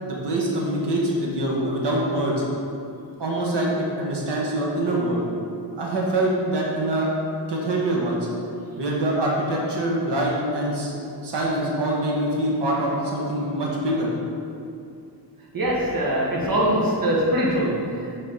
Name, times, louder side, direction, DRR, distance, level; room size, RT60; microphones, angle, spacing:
voice 1, 0.0-2.3 3.2-5.2 5.8-7.1 7.5-8.3 8.8-11.0 11.2-14.1, right 1 dB, 70° right, -3 dB, 1.5 m, -24 dB
voice 2, 15.5-18.2, equal, 55° right, -4 dB, 1.6 m, -23 dB
6.9 x 4.1 x 5.5 m, 2.5 s
wide cardioid pair, 135°, 42 cm